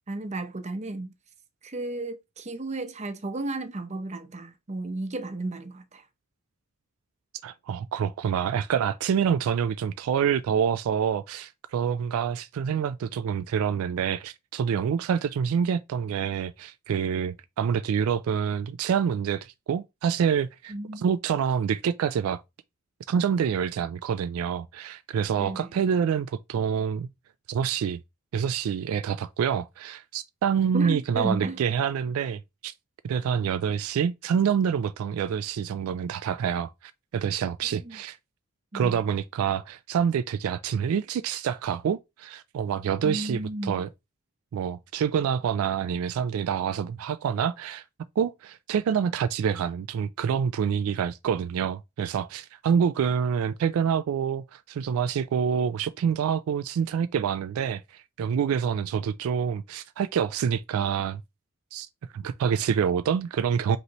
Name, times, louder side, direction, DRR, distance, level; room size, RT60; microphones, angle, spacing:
voice 1, 0.1-1.1 1.6-6.1 20.7-21.1 25.4-25.7 30.7-31.6 37.8-38.0 38.7-39.0 43.0-43.8, right 2 dB, 35° right, 0.7 m, -33 dB
voice 2, 7.4-22.4 23.1-27.1 27.5-28.0 28.3-32.7 33.0-36.7 37.1-38.2 38.7-43.9 44.5-47.8 48.2-61.2 61.7-61.9 62.1-63.8, right 7 dB, 75° right, 0.3 m, -27 dB
5.2 x 3.1 x 2.9 m
head